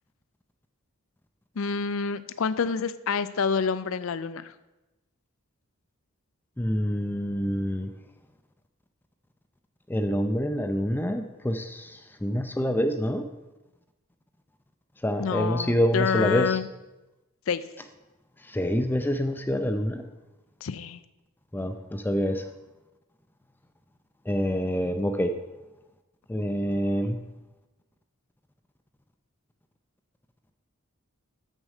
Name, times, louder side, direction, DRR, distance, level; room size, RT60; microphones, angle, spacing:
voice 1, 1.6-4.5 15.2-16.7 17.5-17.7 20.6-21.0, left 5 dB, 70° left, 15 dB, 0.5 m, -28 dB
voice 2, 6.6-7.9 9.9-13.3 15.0-16.6 18.4-20.0 21.5-22.4 24.3-25.3 26.3-27.2, equal, 10° left, 6 dB, 0.4 m, -26 dB
7.4 x 6.3 x 6.5 m, 1.0 s
head